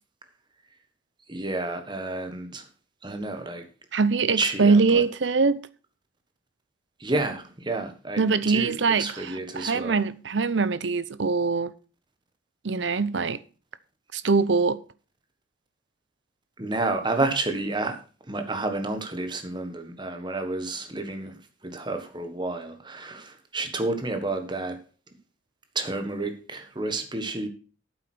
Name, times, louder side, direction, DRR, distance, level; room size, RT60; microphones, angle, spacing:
voice 1, 1.3-2.6 3.0-3.6 4.4-5.0 7.0-10.0 16.6-18.0 18.3-21.3 21.6-24.8 25.7-27.5, right 2 dB, 25° right, 1.5 m, -30 dB
voice 2, 3.9-5.6 8.2-11.7 12.6-13.4 14.1-14.8, right 4 dB, 70° right, 0.7 m, -23 dB
9.0 x 8.0 x 6.1 m
head